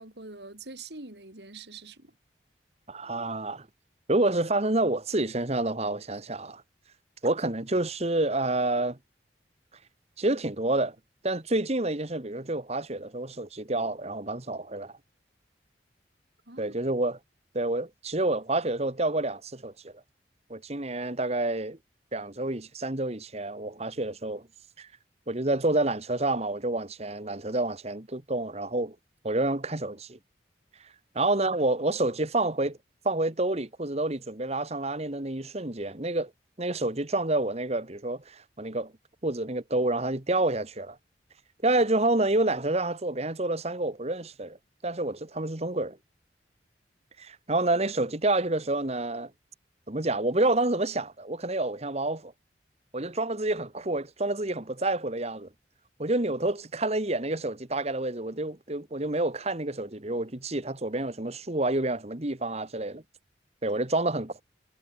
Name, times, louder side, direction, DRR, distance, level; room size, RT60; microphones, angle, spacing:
voice 1, 0.0-2.2 16.5-16.7, right 3 dB, 70° right, 4.2 m, -44 dB
voice 2, 2.9-3.7 4.1-6.6 7.2-9.0 10.2-11.0 11.2-14.9 16.6-17.2 17.5-19.9 20.5-21.8 22.1-24.4 24.8-24.9 25.3-29.0 29.2-30.2 31.2-32.8 33.0-36.3 36.6-38.9 39.2-41.0 41.6-44.6 44.8-46.0 47.2-49.3 49.9-52.3 52.9-55.5 56.0-63.0 63.6-64.4, right 2 dB, 35° right, 1.8 m, -28 dB
head